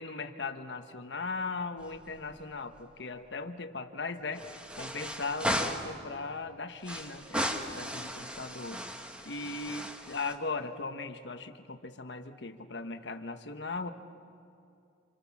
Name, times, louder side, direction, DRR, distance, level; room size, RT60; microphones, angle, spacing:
voice 1, 0.0-4.5 4.8-8.8 9.2-13.9, left 3 dB, 75° left, 7 dB, 1.2 m, -38 dB
sound 1, 1.8-2.5 2.8-2.9 4.3-6.0 6.8-10.3, equal, 5° right, 1.4 m, -36 dB
27.5 x 26.5 x 7.2 m, 2.5 s
head